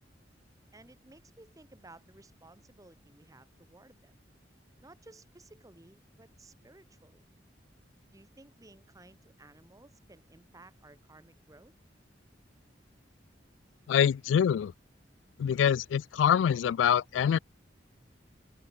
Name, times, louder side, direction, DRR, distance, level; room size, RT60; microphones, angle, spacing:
voice 1, 0.7-4.1 4.8-7.2 8.1-11.7, right 2 dB, 20° right, 1.2 m, -56 dB
voice 2, 13.9-14.7 15.4-17.4, left 8 dB, 85° left, 0.3 m, -25 dB
head